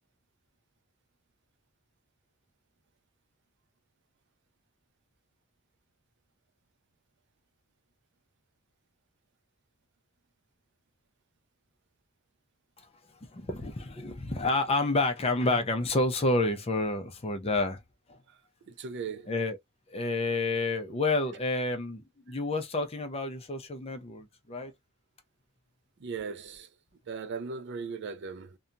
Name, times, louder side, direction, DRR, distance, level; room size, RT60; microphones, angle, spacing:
voice 1, 13.2-17.8 18.1-18.2 19.3-19.6 19.9-24.7, left 2 dB, 25° left, 0.5 m, -29 dB
voice 2, 18.7-19.3 26.0-26.7 27.1-28.6, right 5 dB, 50° right, 0.4 m, -38 dB
2.7 x 2.2 x 2.5 m
head